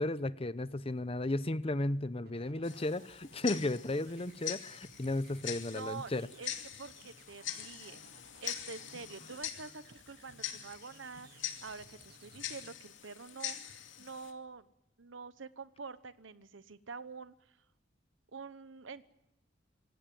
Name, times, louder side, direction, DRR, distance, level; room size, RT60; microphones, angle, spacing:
voice 1, 0.0-6.3, left 2 dB, 30° left, 15 dB, 0.8 m, -34 dB
sound 1, 2.3-12.7, right 4 dB, 55° right, 2.7 m, -60 dB
Tick-tock, 2.6-14.3, left 10 dB, 85° left, 2.5 m, -44 dB
voice 2, 5.6-6.5 6.8-8.0 8.4-14.7 15.0-17.3 18.3-19.0, right 4 dB, 85° right, 14 dB, 1.0 m, -47 dB
26.0 x 17.5 x 9.4 m, 0.89 s
head